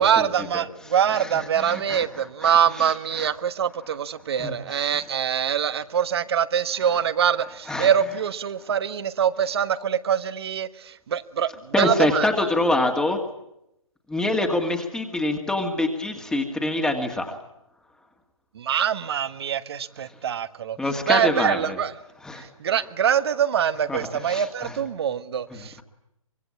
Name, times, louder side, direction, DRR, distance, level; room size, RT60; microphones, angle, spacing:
voice 1, 0.0-12.3 18.5-20.8 21.0-22.0 22.3-25.8, right 8 dB, 50° right, 14 dB, 1.4 m, -24 dB
voice 2, 1.6-2.0 2.4-2.5 3.2-3.3 4.4-4.9 7.7-7.9 11.7-13.2 14.1-17.4 20.8-21.8 22.2-22.5 23.9-24.0 24.3-24.4, left 2 dB, 5° left, 3 dB, 2.0 m, -25 dB
24.5 x 23.5 x 8.6 m, 0.83 s
figure-of-eight pair, 125°, 17 cm